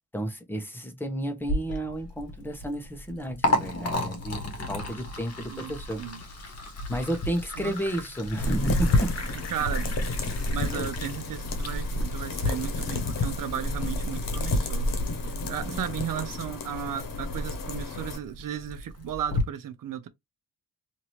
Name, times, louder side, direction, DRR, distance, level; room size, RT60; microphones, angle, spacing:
voice 1, 0.1-6.0 6.9-9.1 10.7-10.8 15.6-15.8, right 1 dB, 5° left, 0.9 m, -32 dB
Liquid, 1.4-19.4, left 1 dB, 45° left, 1.2 m, -36 dB
voice 2, 5.5-6.2 7.6-7.8 9.5-10.0 10.5-15.0 15.3-20.1, right 9 dB, 70° right, 0.7 m, -35 dB
sound 1, 8.4-18.2, left 1 dB, 70° left, 1.0 m, -29 dB
2.8 x 2.7 x 3.0 m
cardioid pair, 70°, 35 cm